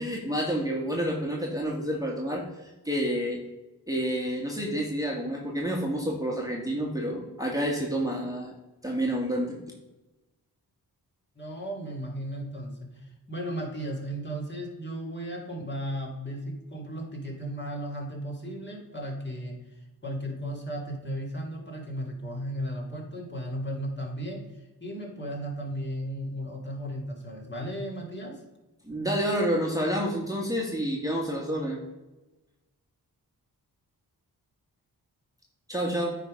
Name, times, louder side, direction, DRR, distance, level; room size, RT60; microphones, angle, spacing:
voice 1, 0.0-3.4 3.9-8.5 8.8-9.6 28.8-31.8 35.7-36.2, equal, 10° right, -2 dB, 1.8 m, -29 dB
voice 2, 11.4-28.4, equal, 25° left, -1 dB, 2.8 m, -35 dB
9.2 x 4.1 x 5.2 m, 1.1 s
cardioid pair, 50°, 41 cm